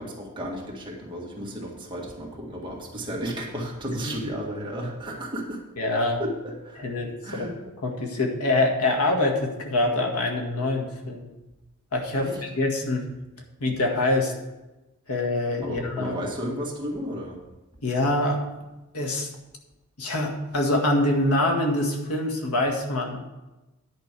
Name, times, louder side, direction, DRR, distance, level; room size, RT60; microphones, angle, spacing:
voice 1, 0.0-5.6 6.2-6.9 7.2-7.5 12.2-12.4 15.6-17.4, equal, 20° right, -2 dB, 1.9 m, -33 dB
voice 2, 5.8-6.2 6.8-7.5 7.8-11.3 11.9-13.0 13.6-14.3 15.1-16.2 17.8-18.4 18.9-19.3 20.0-23.2, left 2 dB, 90° left, 0 dB, 1.9 m, -25 dB
10.5 x 5.3 x 6.8 m, 1.0 s
head